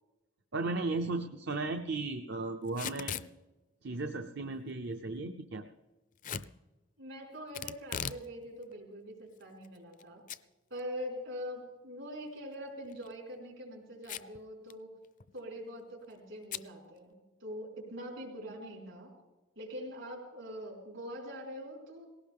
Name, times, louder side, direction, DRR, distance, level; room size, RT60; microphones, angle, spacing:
voice 1, 0.5-3.2 3.8-5.7, right 3 dB, 60° right, 6 dB, 0.7 m, -35 dB
Packing tape duct tape / Tearing, 2.7-3.3 6.2-6.5 7.5-8.3 8.6-8.7 9.4-10.0 10.3-10.4 10.8-10.9 12.9-13.1 14.0-14.4 14.7-14.8 15.0-15.4 16.5-16.7, left 8 dB, 40° left, 0.5 m, -39 dB
voice 2, 7.0-10.2 10.7-15.0 15.3-19.1 19.5-22.1, equal, 75° right, -1 dB, 4.9 m, -43 dB
19.0 x 17.5 x 3.6 m, 1.1 s
head